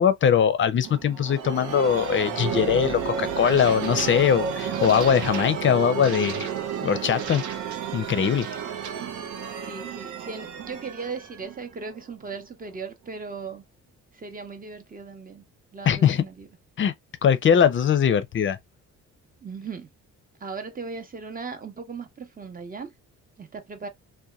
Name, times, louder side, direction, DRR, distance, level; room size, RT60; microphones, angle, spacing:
voice 1, 0.0-6.5 6.8-7.4 7.9-8.5 15.9-16.2 16.8-16.9 17.2-18.6, left 8 dB, 40° left, 0.5 m, -21 dB
sound 1, 0.8-12.3, right 7 dB, 80° right, 0.7 m, -31 dB
voice 2, 9.6-13.6 14.1-15.4 15.7-16.5 19.4-19.9 20.4-22.9 23.4-23.9, right 4 dB, 30° right, 0.8 m, -37 dB
2.8 x 2.2 x 2.2 m
cardioid pair, 90°, 30 cm